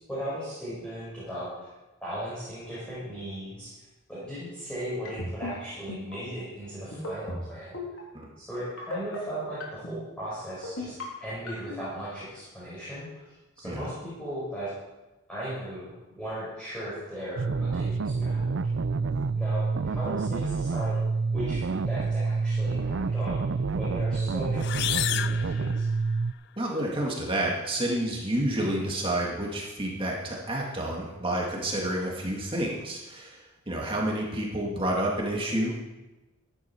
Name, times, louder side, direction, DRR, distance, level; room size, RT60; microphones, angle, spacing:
voice 1, 0.1-1.7 2.0-3.7 4.1-7.8 8.4-13.3 13.6-14.7 15.3-18.6 19.4-21.0 21.3-25.9, equal, 5° left, -11 dB, 5.2 m, -37 dB
sound 1, 5.0-5.5 5.9-6.1 6.9-7.4 7.7-8.0 8.8-9.2 9.6-10.0 10.6-11.0 11.5-11.8, left 1 dB, 75° left, 3.5 m, -35 dB
sound 2, 17.4-26.3, right 4 dB, 60° right, 0.5 m, -28 dB
sound 3, 24.5-26.4, left 11 dB, 50° left, 0.4 m, -31 dB
voice 2, 26.6-35.8, right 1 dB, 25° right, -2 dB, 2.1 m, -29 dB
15.0 x 11.0 x 4.5 m, 1.1 s
head